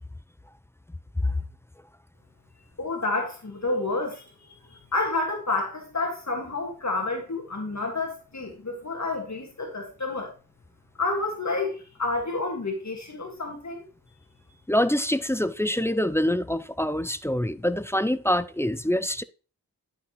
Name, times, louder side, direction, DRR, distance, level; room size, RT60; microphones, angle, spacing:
voice 1, 2.8-10.3 11.0-13.8, left 3 dB, 50° left, 1.7 m, -29 dB
voice 2, 14.7-19.2, left 1 dB, 10° left, 0.3 m, -25 dB
10.5 x 5.8 x 3.0 m
wide cardioid pair, 70°, 36 cm